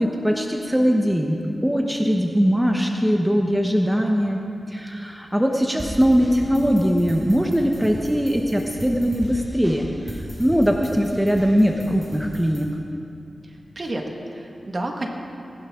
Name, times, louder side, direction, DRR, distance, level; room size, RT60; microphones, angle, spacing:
voice 1, 0.0-1.4 1.6-4.4 4.7-12.7, equal, 5° right, 2 dB, 1.0 m, -21 dB
sound 1, 5.8-12.6, right 1 dB, 30° right, 3.5 m, -36 dB
voice 2, 13.4-15.1, right 1 dB, 45° right, 2 dB, 1.7 m, -31 dB
19.5 x 11.5 x 3.7 m, 2.7 s
cardioid pair, 60°, 0 cm